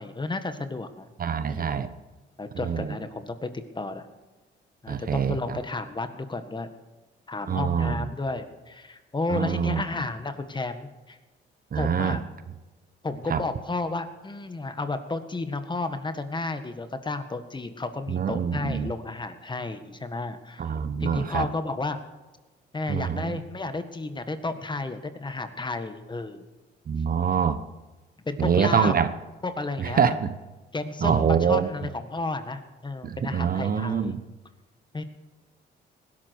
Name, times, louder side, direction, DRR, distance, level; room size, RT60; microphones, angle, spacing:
voice 1, 0.0-1.8 2.4-3.5 3.8-4.1 4.8-6.7 7.3-11.2 11.8-12.3 13.0-20.6 21.0-22.0 22.7-26.5 28.3-29.0 29.4-30.2 30.7-34.2 34.9-35.0, left 3 dB, 25° left, 9 dB, 1.7 m, -32 dB
voice 2, 1.2-1.9 2.6-2.9 4.9-5.4 7.5-8.1 9.3-9.8 11.7-12.2 13.3-13.4 18.1-18.9 20.6-21.4 22.9-23.4 26.9-27.6 28.4-29.1 29.8-30.3 31.0-31.7 33.0-34.2, right 7 dB, 45° right, 11 dB, 1.1 m, -25 dB
19.5 x 12.0 x 4.7 m, 1.2 s
cardioid pair, 90°, 20 cm